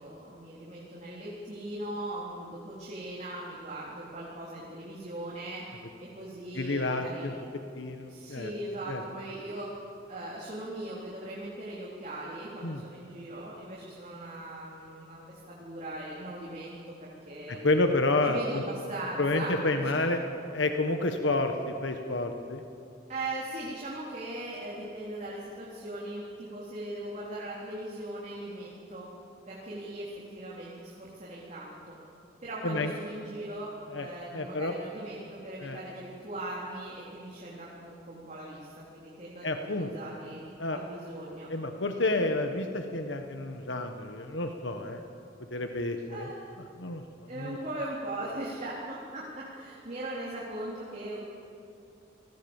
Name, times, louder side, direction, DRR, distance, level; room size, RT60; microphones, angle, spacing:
voice 1, 0.0-5.6 6.0-7.3 8.0-9.7 10.1-17.6 18.2-20.0 23.1-29.1 29.5-32.0 32.4-40.4 40.7-41.5 46.1-46.4 47.3-51.2, right 1 dB, 40° right, -5 dB, 3.9 m, -39 dB
voice 2, 6.5-7.3 7.7-8.5 8.9-9.0 12.6-12.8 17.5-18.6 19.2-20.2 20.5-22.6 32.6-32.9 33.9-34.1 34.3-34.7 35.6-35.8 39.4-39.9 40.6-40.8 41.5-45.0 45.5-46.3 46.8-47.0 47.4-47.6, left 2 dB, 85° left, 5 dB, 1.5 m, -29 dB
29.0 x 20.5 x 7.3 m, 2.6 s
head